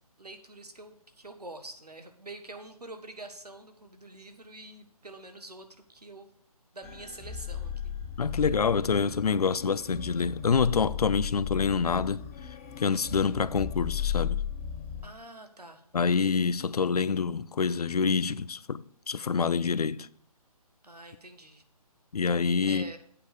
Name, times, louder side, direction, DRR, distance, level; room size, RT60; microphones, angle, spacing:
voice 1, 0.2-6.3 6.7-7.9 15.0-15.8 20.8-21.6 22.6-23.0, right 2 dB, 90° right, 1.5 m, -46 dB
sound 1, 6.8-15.1, left 8 dB, 20° left, 1.2 m, -36 dB
voice 2, 8.2-14.4 15.9-20.1 22.1-22.9, left 5 dB, 75° left, 0.5 m, -27 dB
8.6 x 5.3 x 6.4 m
figure-of-eight pair, 145°, 20 cm